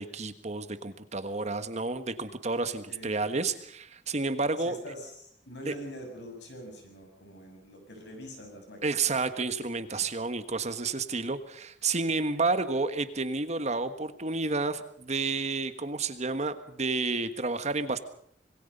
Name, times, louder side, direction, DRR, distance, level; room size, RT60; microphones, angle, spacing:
voice 1, 0.0-4.7 5.7-5.8 8.8-18.0, right 3 dB, 40° right, 10 dB, 1.4 m, -30 dB
voice 2, 2.9-3.2 4.6-8.8, equal, 75° left, 4 dB, 7.1 m, -44 dB
26.5 x 21.0 x 5.5 m, 0.65 s
head